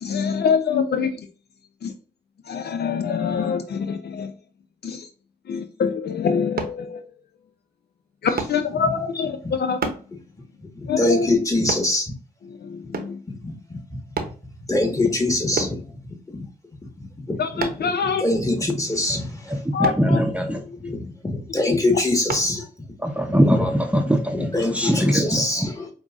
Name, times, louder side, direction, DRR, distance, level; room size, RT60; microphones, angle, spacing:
voice 1, 0.0-1.3 1.8-1.9 2.5-4.3 4.8-5.1 5.5-7.1 8.2-9.9 10.9-11.3 12.5-13.2 17.4-18.2 19.7-20.2 20.7-20.8 21.6-21.8, left 6 dB, 65° left, 0.5 m, -25 dB
sound 1, 6.6-6.8 8.4-8.6 9.8-10.1 11.7-11.9 12.9-13.2 14.2-14.4 15.6-15.8 17.6-17.9 19.8-20.1 22.3-22.5 23.1-23.2, right 5 dB, 60° right, 0.8 m, -28 dB
voice 2, 11.0-12.1 13.4-13.8 14.7-15.8 16.3-16.4 17.0-17.9 18.2-19.6 20.8-22.7 23.3-23.7 24.3-25.9, left 2 dB, 20° left, 1.4 m, -24 dB
voice 3, 19.5-20.6 23.0-25.4, equal, 5° right, 0.7 m, -21 dB
5.4 x 2.4 x 2.4 m
supercardioid pair, 45°, 18 cm